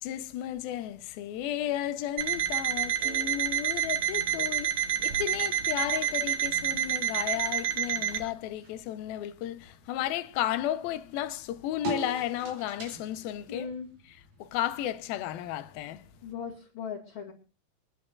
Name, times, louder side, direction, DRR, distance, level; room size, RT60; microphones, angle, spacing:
voice 1, 0.0-13.7 14.4-16.0, left 12 dB, 80° left, 2.6 m, -33 dB
Alarm, 2.2-8.2, right 9 dB, 60° right, 2.6 m, -29 dB
sound 1, 3.0-16.6, right 2 dB, 80° right, 4.6 m, -46 dB
voice 2, 13.5-13.9 16.2-17.3, left 6 dB, 35° left, 2.9 m, -38 dB
26.5 x 11.0 x 2.4 m
omnidirectional pair, 4.2 m